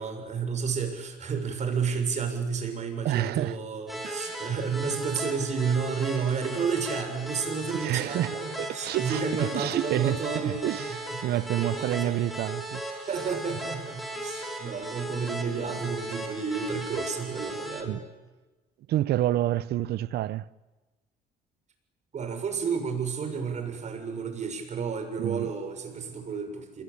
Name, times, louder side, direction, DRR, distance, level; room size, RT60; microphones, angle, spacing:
voice 1, 0.0-10.7 11.1-11.2 11.6-12.6 13.1-18.0 22.1-26.8, right 5 dB, 45° right, 6.9 m, -31 dB
voice 2, 3.0-3.6 4.0-4.4 7.8-10.2 10.4-10.9 11.2-13.1 17.8-18.0 18.9-20.5 25.2-25.5, right 14 dB, 70° right, 0.9 m, -28 dB
sound 1, 3.9-17.8, right 1 dB, ahead, 5.4 m, -37 dB
27.5 x 21.5 x 8.6 m
cardioid pair, 110°, 17 cm